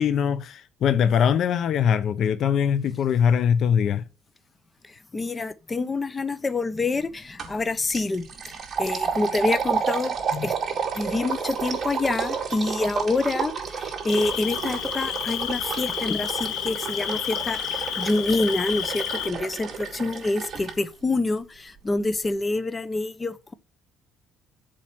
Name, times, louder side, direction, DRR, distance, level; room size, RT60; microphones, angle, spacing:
voice 1, 0.0-4.0 10.3-10.5, left 8 dB, 60° left, 0.7 m, -22 dB
voice 2, 4.8-10.2 10.4-10.5 10.9-23.5, left 3 dB, 20° left, 0.8 m, -27 dB
sound 1, 7.4-7.6 7.9-20.7, right 6 dB, 30° right, 4.4 m, -31 dB
Cricket, 14.1-19.3, left 12 dB, 85° left, 1.1 m, -31 dB
7.7 x 5.6 x 7.3 m
cardioid pair, 120°, 0 cm